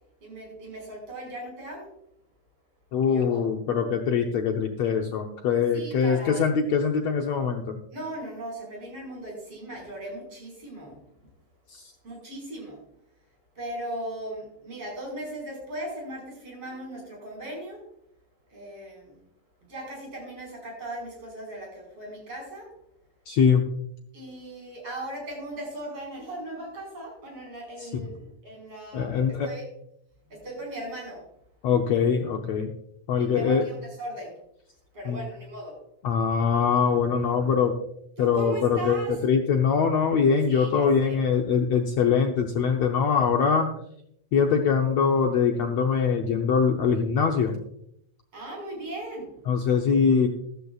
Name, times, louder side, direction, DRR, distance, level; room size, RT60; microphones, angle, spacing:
voice 1, 0.2-1.9 3.0-3.5 5.7-6.4 7.9-11.0 12.0-12.8 13.6-17.8 18.5-19.3 19.6-22.7 24.1-29.6 30.3-31.2 33.2-34.4 34.9-35.8 38.2-39.2 40.5-41.2 48.3-49.3, right 1 dB, 40° right, -1 dB, 5.8 m, -38 dB
voice 2, 2.9-7.7 11.7-11.8 23.3-23.6 27.8-27.9 28.9-29.5 31.6-32.7 33.1-33.6 35.1-35.2 36.0-37.8 38.2-39.0 39.2-43.7 44.3-47.5 49.5-50.3, left 6 dB, 80° left, 3 dB, 1.5 m, -23 dB
15.0 x 13.0 x 2.4 m, 0.76 s
omnidirectional pair, 4.1 m